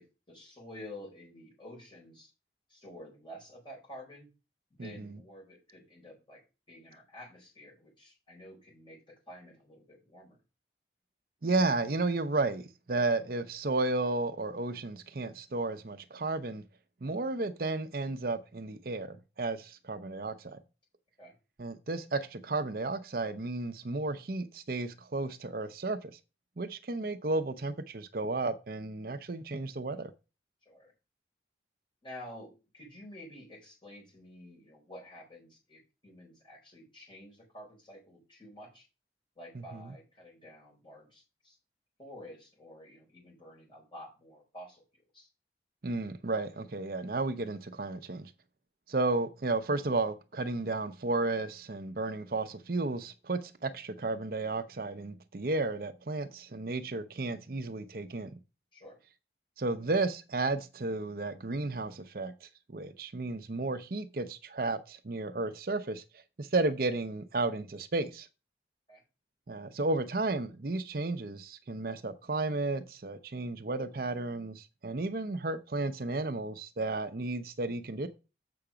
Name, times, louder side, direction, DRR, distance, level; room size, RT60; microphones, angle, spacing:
voice 1, 0.0-2.3 2.7-4.3 4.7-6.4 6.7-10.4 21.2-21.3 30.6-30.9 32.0-38.9 39.4-41.6 42.0-45.3 58.7-59.0 68.9-69.0, left 1 dB, 25° left, 4.4 m, -50 dB
voice 2, 4.8-5.1 11.4-16.6 17.0-20.6 21.6-26.2 26.6-30.1 39.5-39.8 45.8-48.3 48.9-58.3 59.6-68.3 69.5-78.1, right 2 dB, 50° right, 0.6 m, -33 dB
7.7 x 5.8 x 5.0 m
head